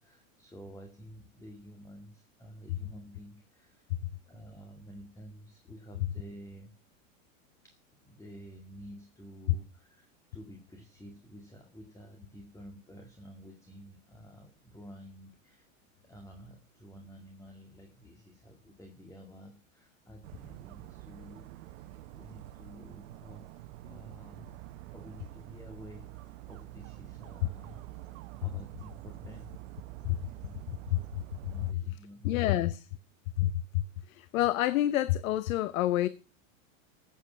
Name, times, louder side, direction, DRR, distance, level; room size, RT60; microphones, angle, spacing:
voice 1, 0.0-3.9 4.3-6.8 7.6-7.8 8.0-15.7 16.0-24.5 24.9-29.5 30.1-30.6 30.9-31.0 31.4-32.7, equal, 10° left, 1.9 m, -51 dB
Dog, 20.2-31.7, right 16 dB, 70° right, 0.9 m, -47 dB
voice 2, 32.2-32.8 33.4-33.8 34.1-36.1, left 14 dB, 80° left, 0.9 m, -27 dB
14.5 x 8.3 x 6.1 m
supercardioid pair, 125°, 40 cm